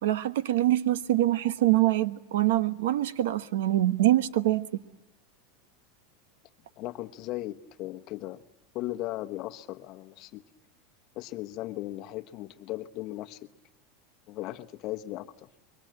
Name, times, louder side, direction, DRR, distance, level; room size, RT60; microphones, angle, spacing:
voice 1, 0.0-4.7, right 14 dB, 85° right, 1.1 m, -24 dB
voice 2, 6.8-8.4 8.7-10.4 11.1-13.4 14.3-15.5, left 16 dB, 40° left, 1.0 m, -37 dB
26.5 x 23.0 x 8.9 m
supercardioid pair, 160°, 0 cm